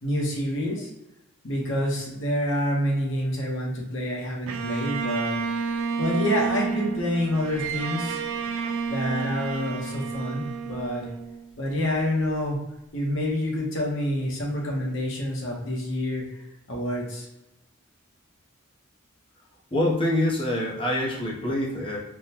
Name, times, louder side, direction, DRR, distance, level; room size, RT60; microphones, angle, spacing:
voice 1, 0.0-0.9 1.4-5.4 5.6-8.2 8.9-11.1 11.6-12.6 12.9-16.2 16.7-17.3, equal, 65° left, -2 dB, 0.9 m, -27 dB
Bowed string instrument, 4.5-11.7, right 5 dB, 70° right, 0.3 m, -30 dB
voice 2, 19.7-22.0, left 1 dB, 25° left, -3 dB, 0.7 m, -25 dB
3.6 x 2.2 x 2.8 m, 0.89 s
head